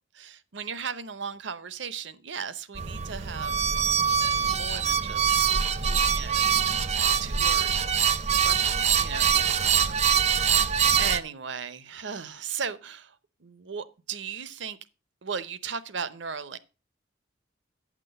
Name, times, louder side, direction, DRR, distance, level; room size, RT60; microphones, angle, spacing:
voice 1, 0.1-3.6 4.4-5.5 6.1-6.5 7.2-7.7 8.4-8.7 9.0-13.2 13.4-14.8 15.2-16.6, right 6 dB, 65° right, 0.8 m, -36 dB
sound 1, 2.7-11.2, right 7 dB, 35° right, 0.5 m, -24 dB
9.2 x 6.1 x 6.7 m
head